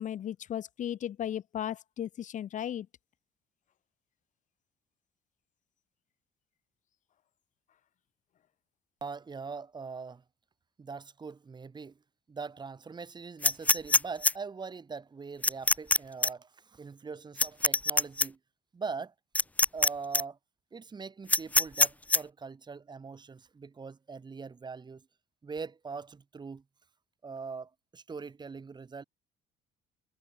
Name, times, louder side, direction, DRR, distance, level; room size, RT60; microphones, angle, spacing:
voice 1, 0.0-2.9, left 10 dB, 50° left, 0.9 m, -35 dB
voice 2, 9.0-10.2 10.8-12.0 12.3-18.4 18.7-19.1 19.7-20.4 20.7-25.1 25.4-26.6 27.2-29.0, right 5 dB, 25° right, 2.0 m, -42 dB
sound 1, 13.4-14.3 15.4-16.0 16.2-16.3 17.4-18.3 19.4-19.9 20.1-20.2 21.3-22.2, left 2 dB, 10° left, 0.4 m, -23 dB
cardioid pair, 110°, 17 cm